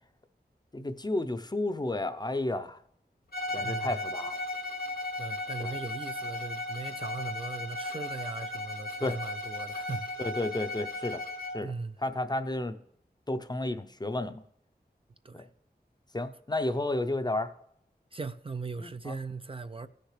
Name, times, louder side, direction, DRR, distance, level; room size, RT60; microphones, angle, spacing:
voice 1, 0.7-2.8 3.5-4.4 5.6-5.8 9.0-9.2 10.2-11.2 11.5-11.7 12.0-12.8 13.3-14.4 15.3-15.4 16.1-17.5 18.8-19.2, left 2 dB, 25° left, 0.6 m, -32 dB
Bowed string instrument, 3.3-11.6, left 2 dB, 65° left, 0.9 m, -36 dB
voice 2, 3.5-4.0 5.2-10.1 11.6-12.0 15.2-15.5 18.1-19.9, right 4 dB, 35° right, 0.4 m, -39 dB
16.5 x 6.6 x 3.2 m
wide cardioid pair, 65°, 17 cm